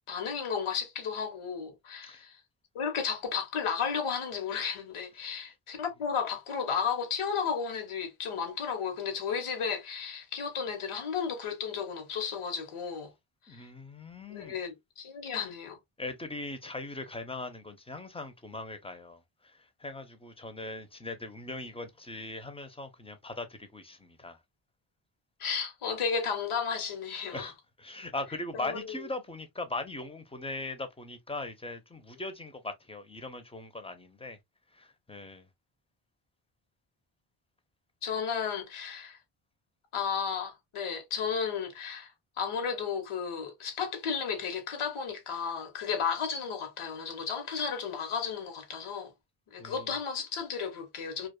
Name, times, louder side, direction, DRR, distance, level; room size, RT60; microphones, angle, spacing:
voice 1, 0.1-2.4 2.7-13.1 13.5-13.7 14.3-15.8 25.4-27.5 28.5-29.1 38.0-39.2 39.9-49.1 49.5-51.3, left 6 dB, 80° left, 1.0 m, -33 dB
voice 2, 13.5-14.5 16.0-24.4 27.3-34.4 34.7-35.5 49.6-50.0, left 2 dB, 10° left, 0.6 m, -40 dB
2.4 x 2.3 x 2.3 m
cardioid pair, 50°, 50 cm